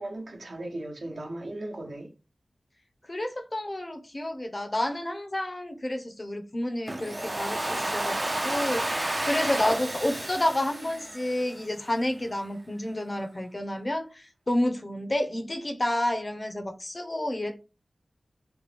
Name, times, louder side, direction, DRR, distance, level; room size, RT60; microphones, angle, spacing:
voice 1, 0.0-2.1, right 1 dB, 75° right, 0.9 m, -37 dB
voice 2, 3.1-8.2 8.4-17.6, left 1 dB, 35° left, 0.6 m, -30 dB
Domestic sounds home sounds, 6.9-11.8, right 1 dB, 25° right, 0.4 m, -31 dB
3.0 x 2.3 x 3.3 m
wide cardioid pair, 65°, 0 cm